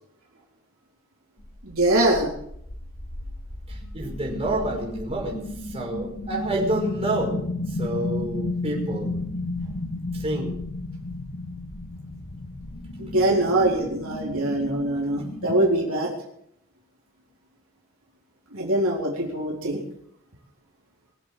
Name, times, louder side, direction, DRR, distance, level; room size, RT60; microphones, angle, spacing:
sound 1, 1.4-15.7, left 2 dB, 60° left, 2.0 m, -33 dB
voice 1, 1.6-2.3 13.0-16.1 18.5-19.8, right 1 dB, 75° right, -2 dB, 4.0 m, -23 dB
voice 2, 3.7-9.2 10.1-10.5, right 1 dB, 30° right, -1 dB, 5.5 m, -29 dB
22.5 x 8.1 x 7.6 m, 0.73 s
head